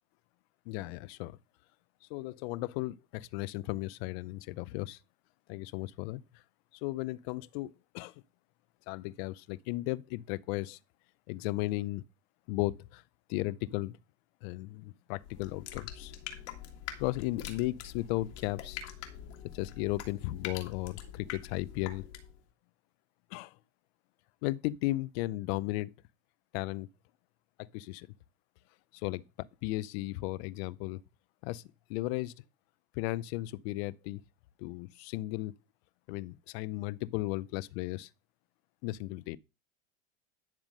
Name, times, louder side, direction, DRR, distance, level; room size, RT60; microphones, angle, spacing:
voice 1, 0.7-1.4 2.1-5.0 5.5-6.4 6.7-8.1 8.9-10.8 11.3-12.0 12.5-13.0 13.3-14.0 14.4-16.1 17.0-18.8 19.5-22.1 23.3-23.6 24.4-25.9 26.5-26.9 27.6-28.1 28.9-31.0 31.4-32.3 32.9-34.2 34.6-35.5 36.1-38.1 38.8-39.4, left 18 dB, 60° left, 0.6 m, -35 dB
sound 1, 15.2-22.4, left 10 dB, 75° left, 1.8 m, -44 dB
10.5 x 3.7 x 6.3 m
supercardioid pair, 110°, 35 cm